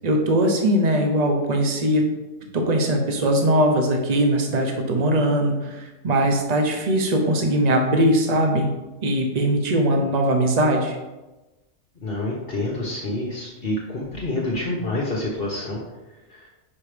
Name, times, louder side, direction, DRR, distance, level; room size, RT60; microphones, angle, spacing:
voice 1, 0.0-2.0 2.5-8.7 9.0-11.0, right 1 dB, 35° right, 2 dB, 1.0 m, -20 dB
voice 2, 12.0-15.8 16.1-16.5, left 2 dB, 45° left, -3 dB, 1.2 m, -28 dB
5.4 x 5.1 x 5.0 m, 1.1 s
omnidirectional pair, 1.4 m